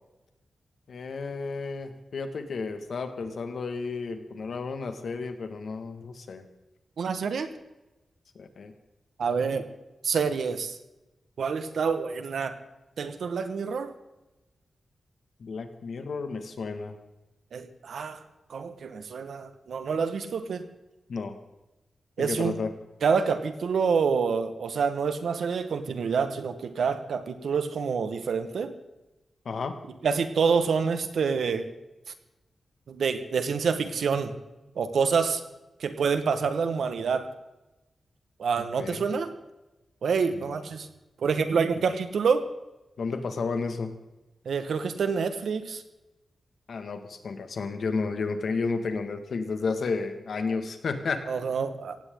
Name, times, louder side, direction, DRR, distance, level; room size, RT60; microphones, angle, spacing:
voice 1, 0.9-6.4 8.4-8.7 15.4-16.9 21.1-21.4 22.2-22.7 29.5-29.8 38.8-39.1 40.3-40.6 43.0-43.9 46.7-51.2, left 4 dB, 75° left, 7 dB, 2.0 m, -32 dB
voice 2, 7.0-7.5 9.2-9.7 10.0-10.8 11.4-12.5 13.0-13.9 17.5-18.2 18.5-20.7 22.2-22.6 23.0-28.7 30.0-31.7 32.9-34.4 34.7-35.4 35.8-37.3 38.4-39.3 40.0-40.9 41.2-42.4 44.4-45.8 51.3-52.0, right 5 dB, 85° right, 9 dB, 1.6 m, -27 dB
17.5 x 16.5 x 3.9 m, 1.0 s
cardioid pair, 75°, 0 cm